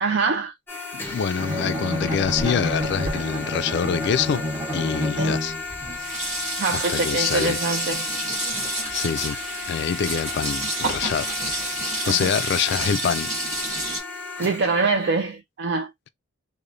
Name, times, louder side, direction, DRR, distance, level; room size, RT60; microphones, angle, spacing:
voice 1, 0.0-0.5 5.2-5.3 6.6-8.1 12.0-12.6 14.4-15.9, right 4 dB, 55° right, 0.4 m, -24 dB
sound 1, 0.7-15.2, left 3 dB, 10° left, 0.6 m, -35 dB
voice 2, 1.1-4.4 4.7-5.5 6.7-7.6 8.9-9.4 9.7-11.3 12.1-13.3, left 7 dB, 55° left, 0.3 m, -25 dB
Bowed string instrument, 1.4-5.8, left 1 dB, 15° right, 1.0 m, -28 dB
Sink (filling or washing), 1.5-4.6 5.4-5.5 5.7-14.0, right 1 dB, 35° right, 1.2 m, -30 dB
3.1 x 2.1 x 2.5 m
head